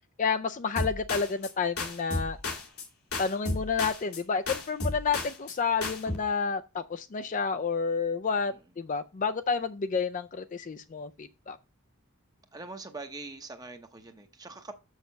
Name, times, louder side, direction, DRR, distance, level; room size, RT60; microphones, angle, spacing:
voice 1, 0.2-2.4 3.2-11.6, left 5 dB, 35° left, 0.4 m, -30 dB
sound 1, 0.8-1.5 1.8-2.9 3.1-4.2 4.5-5.6 5.8-6.2, left 2 dB, 85° left, 2.4 m, -33 dB
voice 2, 12.5-14.7, right 3 dB, 15° right, 0.7 m, -43 dB
6.4 x 6.2 x 6.8 m
head